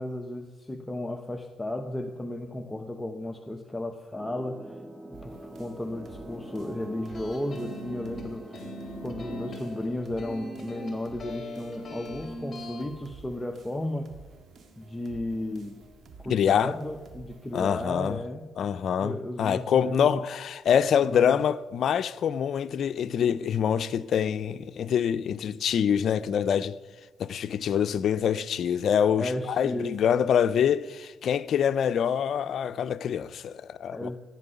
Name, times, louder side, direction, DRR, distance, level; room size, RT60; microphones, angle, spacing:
voice 1, 0.0-4.8 5.1-8.6 9.0-14.1 14.8-15.8 16.2-18.5 19.0-20.1 21.0-21.4 29.2-30.0 33.9-34.2, left 1 dB, 15° left, 0.9 m, -34 dB
sound 1, 4.1-9.9, right 1 dB, 10° right, 1.2 m, -43 dB
sound 2, 5.1-18.2, right 4 dB, 55° right, 2.0 m, -52 dB
sound 3, 7.1-12.8, left 1 dB, 35° left, 3.3 m, -40 dB
voice 2, 16.3-16.7 17.5-18.2 18.6-26.7 27.2-34.2, left 8 dB, 65° left, 0.5 m, -25 dB
15.0 x 9.9 x 6.9 m
cardioid pair, 90°, 0 cm